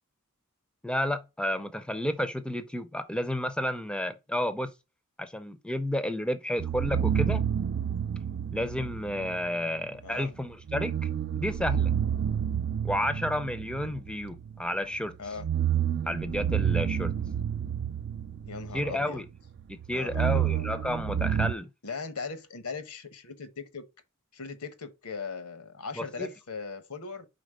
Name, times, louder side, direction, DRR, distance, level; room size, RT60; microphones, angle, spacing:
voice 1, 0.8-4.7 5.2-7.4 8.5-11.9 12.8-15.1 16.1-17.1 18.7-19.2 19.7-21.7 26.0-26.3, left 1 dB, 5° left, 0.5 m, -31 dB
sound 1, 6.6-9.5 10.7-14.6 15.3-19.3 19.6-21.5, right 9 dB, 50° right, 0.4 m, -29 dB
voice 2, 10.0-10.3 15.2-15.5 18.4-19.2 19.9-20.7 21.8-23.9 24.3-27.3, left 5 dB, 80° left, 1.0 m, -39 dB
5.2 x 3.9 x 5.0 m
head